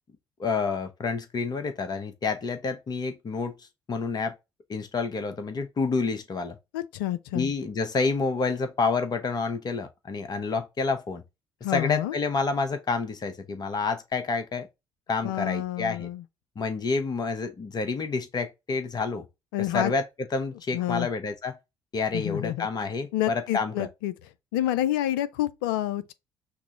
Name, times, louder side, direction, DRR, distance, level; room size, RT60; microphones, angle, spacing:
voice 1, 0.4-4.3 4.7-6.6 7.3-11.2 11.7-14.7 15.1-16.1 16.6-19.3 19.7-20.0 20.3-21.6 21.9-23.9, left 4 dB, 35° left, 0.8 m, -29 dB
voice 2, 6.7-7.5 11.6-12.2 15.2-16.2 19.5-19.9 20.7-21.1 22.1-22.7 23.1-24.1 24.5-26.1, left 13 dB, 65° left, 0.4 m, -28 dB
5.8 x 2.0 x 2.8 m
figure-of-eight pair, 50°, 12 cm